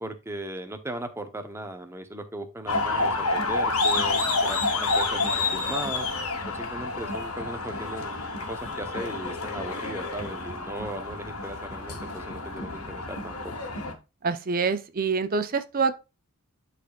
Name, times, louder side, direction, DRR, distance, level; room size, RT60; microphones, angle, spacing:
voice 1, 0.0-6.1 6.5-8.2 8.5-13.5, right 1 dB, 10° right, 0.9 m, -37 dB
sound 1, 2.7-13.9, left 3 dB, 80° left, 1.7 m, -29 dB
voice 2, 14.2-16.0, right 5 dB, 40° right, 0.6 m, -26 dB
11.5 x 4.1 x 2.4 m
head